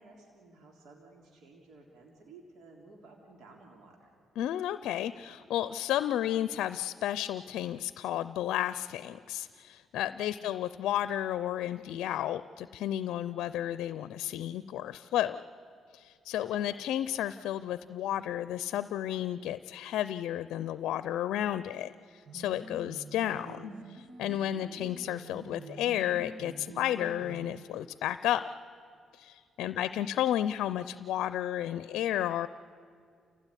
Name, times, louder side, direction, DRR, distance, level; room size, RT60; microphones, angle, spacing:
voice 1, 0.0-4.1 10.3-10.5 16.5-16.6 24.4-24.8 29.6-30.1, right 3 dB, 75° right, 0 dB, 3.4 m, -55 dB
voice 2, 4.4-15.4 15.9-28.5 29.1-32.5, left 12 dB, 85° left, 14 dB, 0.5 m, -32 dB
sound 1, 22.3-27.6, right 4 dB, 55° right, 2.0 m, -46 dB
29.0 x 17.0 x 9.9 m, 2.3 s
cardioid pair, 90°, 0 cm